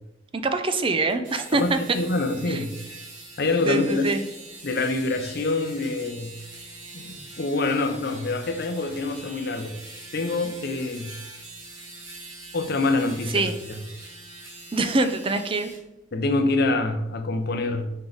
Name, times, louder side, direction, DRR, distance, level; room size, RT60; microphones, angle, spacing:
voice 1, 0.3-1.8 2.5-2.6 3.7-4.2 13.3-13.6 14.7-15.7, right 2 dB, 30° right, 9 dB, 0.5 m, -24 dB
sound 1, 1.1-15.8, right 2 dB, 80° right, 1.7 m, -43 dB
voice 2, 1.5-2.8 3.4-4.0 4.6-6.4 6.9-9.7 10.1-11.2 12.5-13.8 16.1-17.9, left 2 dB, 55° left, 7 dB, 0.7 m, -26 dB
5.4 x 4.6 x 4.0 m, 0.94 s
head